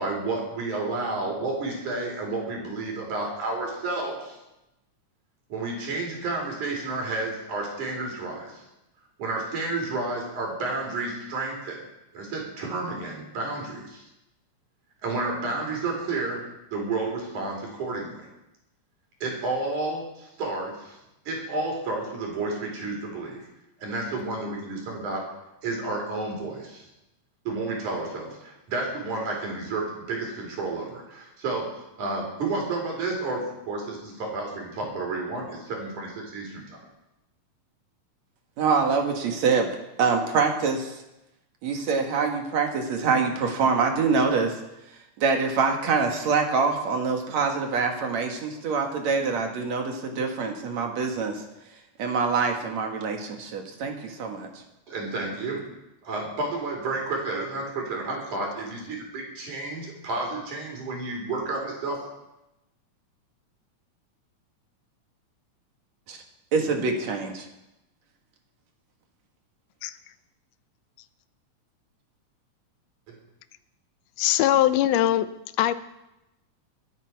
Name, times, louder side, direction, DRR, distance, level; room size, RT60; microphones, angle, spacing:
voice 1, 0.0-4.4 5.5-8.6 9.2-11.8 12.1-14.0 15.0-16.4 16.7-18.3 19.2-21.0 21.3-23.4 23.8-25.3 25.6-26.9 27.5-31.7 32.0-36.8 54.9-55.6 56.0-62.0 73.1-73.2, right 3 dB, 80° right, 0 dB, 5.3 m, -31 dB
voice 2, 38.6-39.7 40.0-41.0 41.6-44.6 45.2-51.4 52.0-54.5 66.1-66.2 66.5-67.5, right 5 dB, 65° right, 3 dB, 2.9 m, -25 dB
voice 3, 74.2-75.3 75.6-75.7, left 12 dB, 70° left, 12 dB, 1.7 m, -21 dB
23.5 x 10.0 x 4.7 m, 0.93 s
omnidirectional pair, 3.4 m